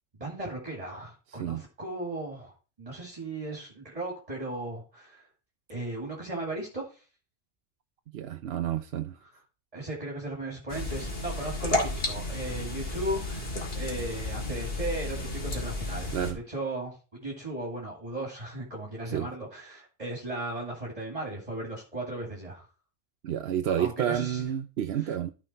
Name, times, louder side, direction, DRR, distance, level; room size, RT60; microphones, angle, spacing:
voice 1, 0.2-5.3 5.7-7.0 9.7-13.5 13.8-22.6 23.8-24.5 24.9-25.2, right 1 dB, 30° right, 2.5 m, -36 dB
voice 2, 8.1-9.2 16.1-16.4 19.1-19.3 23.2-25.3, right 10 dB, 65° right, 0.8 m, -30 dB
sound 1, 10.7-16.3, left 2 dB, 55° left, 2.6 m, -32 dB
13.0 x 5.0 x 4.3 m
omnidirectional pair, 1.2 m